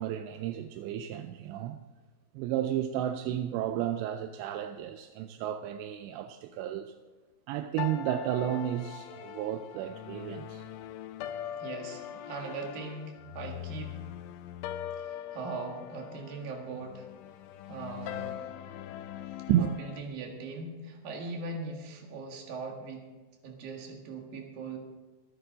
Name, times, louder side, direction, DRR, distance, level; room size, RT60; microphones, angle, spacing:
voice 1, 0.0-1.8 2.3-6.9 7.5-10.6 19.5-19.7, right 11 dB, 85° right, 2.6 m, -32 dB
sound 1, 7.8-20.0, left 11 dB, 85° left, 3.0 m, -41 dB
voice 2, 11.5-14.0 15.0-17.1 17.7-18.5 19.6-23.1 23.4-24.8, right 3 dB, 55° right, 3.2 m, -40 dB
25.0 x 9.4 x 3.8 m
omnidirectional pair, 5.5 m